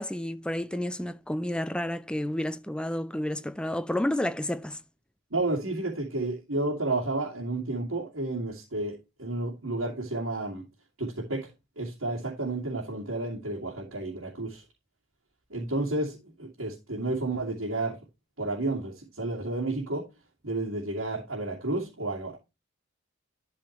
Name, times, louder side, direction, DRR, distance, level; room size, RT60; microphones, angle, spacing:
voice 1, 0.0-4.8, left 1 dB, 5° left, 0.5 m, -30 dB
voice 2, 5.3-10.7 11.0-11.5 11.8-14.6 15.5-18.0 18.4-20.1 20.4-22.4, right 2 dB, 85° right, 2.5 m, -31 dB
12.0 x 4.8 x 3.0 m
head